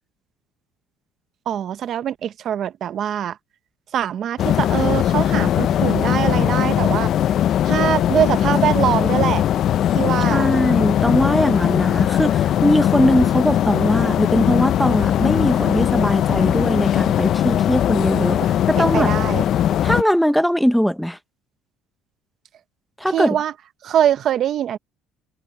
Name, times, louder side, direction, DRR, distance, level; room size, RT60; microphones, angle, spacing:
voice 1, 1.5-3.4 3.9-7.1 7.6-9.4 9.9-10.5 18.4-19.4 23.1-23.5 23.8-24.8, right 10 dB, 45° right, 0.7 m, -23 dB
sound 1, 4.4-20.0, left 11 dB, 45° left, 0.4 m, -19 dB
voice 2, 10.3-18.4 18.7-19.1 19.8-21.2 23.0-23.4, equal, ahead, 0.6 m, -20 dB
cardioid pair, 150°, 0 cm